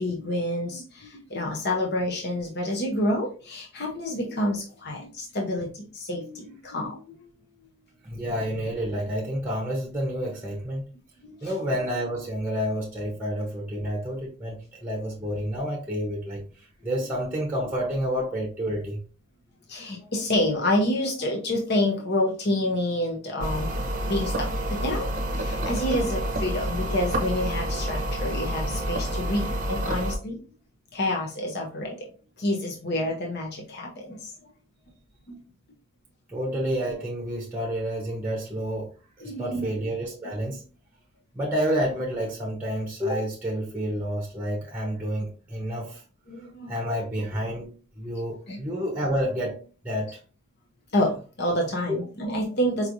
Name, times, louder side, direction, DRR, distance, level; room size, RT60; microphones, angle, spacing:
voice 1, 0.0-7.4 11.2-11.5 19.7-23.7 24.1-30.4 30.9-32.1 32.4-34.3 35.3-35.4 39.2-39.7 46.3-46.7 48.5-48.6 50.9-52.9, left 1 dB, 50° left, 0.8 m, -28 dB
voice 2, 8.0-10.8 11.4-19.0 36.3-38.9 39.4-40.6 41.3-46.0 46.4-50.2 51.9-52.0, equal, 10° right, 0.9 m, -29 dB
sound 1, 23.4-30.2, right 1 dB, 40° right, 0.7 m, -28 dB
4.7 x 3.2 x 2.6 m
head